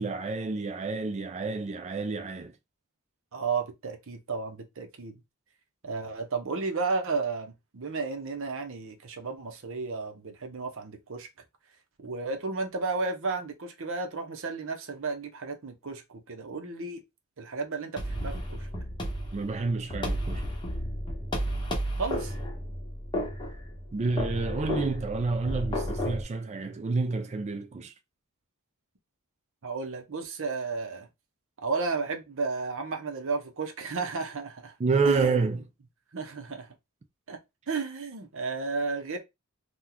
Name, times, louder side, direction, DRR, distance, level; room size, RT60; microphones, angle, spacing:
voice 1, 0.0-2.5 19.3-20.4 23.9-27.9 34.8-35.6, right 4 dB, 30° right, 0.4 m, -29 dB
voice 2, 3.3-5.1 5.8-11.3 12.0-17.0 17.4-18.7 22.0-22.3 29.6-31.1 31.6-34.7 35.0-35.6 36.1-36.7 37.3-37.4 37.7-39.2, right 4 dB, 60° right, 0.7 m, -33 dB
sound 1, 18.0-26.2, equal, 20° left, 1.0 m, -32 dB
2.9 x 2.3 x 3.8 m
head